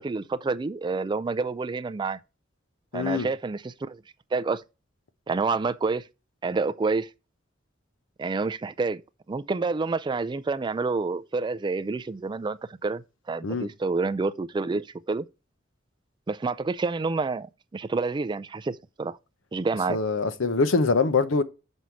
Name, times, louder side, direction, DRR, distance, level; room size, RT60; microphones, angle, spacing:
voice 1, 0.0-2.2 2.9-4.0 4.3-4.6 5.3-6.0 6.4-7.1 8.2-9.0 9.3-15.3 16.3-19.2 19.5-20.0, right 4 dB, 25° right, 0.3 m, -28 dB
voice 2, 2.9-3.3 13.4-13.7 19.9-21.4, left 4 dB, 85° left, 0.8 m, -23 dB
6.3 x 5.4 x 4.5 m
head